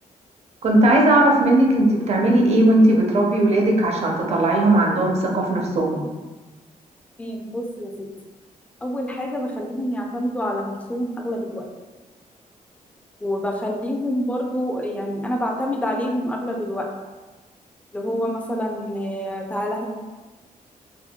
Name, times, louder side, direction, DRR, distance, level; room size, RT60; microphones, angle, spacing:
voice 1, 0.6-6.0, right 1 dB, 50° right, 0 dB, 0.6 m, -18 dB
voice 2, 7.2-8.1 8.8-11.6 13.2-16.9 17.9-19.9, equal, 10° left, 0 dB, 0.4 m, -27 dB
3.5 x 2.2 x 2.3 m, 1.2 s
wide cardioid pair, 140°, 14 cm